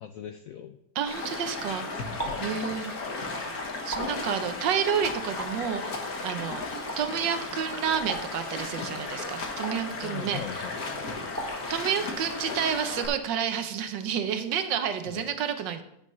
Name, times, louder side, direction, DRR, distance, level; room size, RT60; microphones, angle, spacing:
voice 1, 0.0-0.8 2.3-2.7 10.0-11.3 15.1-15.3, left 10 dB, 75° left, 8 dB, 0.7 m, -40 dB
voice 2, 0.9-2.0 2.4-3.3 3.8-6.6 7.0-10.6 11.7-15.8, right 8 dB, 80° right, 9 dB, 1.5 m, -30 dB
Stream, 1.1-13.1, left 3 dB, 55° left, 1.7 m, -35 dB
sound 1, 2.2-2.6 3.9-4.3 5.4-5.7 6.9-7.2 8.1-8.5 9.6-10.0 11.4-11.8, right 1 dB, 10° right, 1.4 m, -37 dB
14.5 x 7.0 x 3.2 m, 0.79 s
omnidirectional pair, 2.0 m